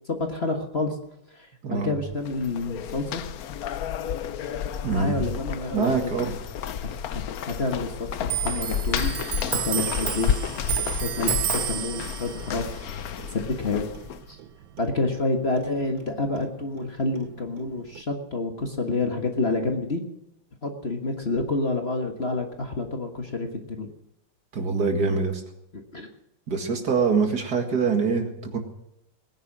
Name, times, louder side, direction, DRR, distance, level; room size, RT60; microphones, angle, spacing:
voice 1, 0.1-0.9 1.3-1.4 1.7-3.2 4.8-6.2 7.1-9.1 9.4-10.3 11.0-12.6 13.3-13.9 14.3-14.4 14.8-20.0 20.6-23.9 25.7-26.1, left 2 dB, 35° left, 4 dB, 1.6 m, -28 dB
voice 2, 1.6-1.9 4.8-5.1 5.7-6.3 24.5-25.4 26.5-28.6, right 5 dB, 55° right, 4 dB, 2.5 m, -24 dB
sound 1, 2.1-14.2, left 8 dB, 60° left, 1.0 m, -31 dB
Clock, 8.2-15.3 15.6-16.9 17.2-18.0, right 12 dB, 85° right, 1.6 m, -32 dB
20.0 x 10.5 x 6.2 m, 0.84 s
omnidirectional pair, 2.1 m